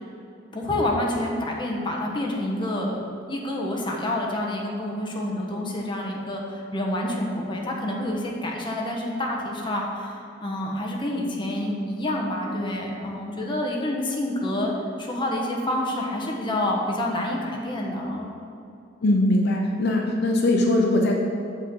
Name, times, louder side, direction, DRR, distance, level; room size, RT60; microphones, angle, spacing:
voice 1, 0.5-3.0 3.3-14.7 15.0-18.3, left 1 dB, 25° left, -1 dB, 1.0 m, -28 dB
voice 2, 19.0-21.2, left 1 dB, 60° left, 1 dB, 0.7 m, -21 dB
8.3 x 3.8 x 6.8 m, 2.7 s
head